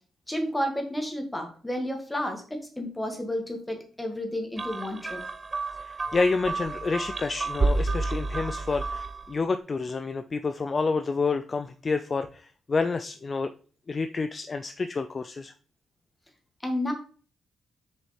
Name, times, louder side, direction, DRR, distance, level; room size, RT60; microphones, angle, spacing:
voice 1, 0.3-5.2 16.6-16.9, left 1 dB, 10° left, 4 dB, 1.7 m, -31 dB
sound 1, 4.6-9.3, right 3 dB, 30° right, 0.6 m, -30 dB
voice 2, 5.8-13.5 13.9-15.5, left 4 dB, 30° left, 9 dB, 0.3 m, -29 dB
6.4 x 4.6 x 4.3 m, 0.41 s
cardioid pair, 115°, 0 cm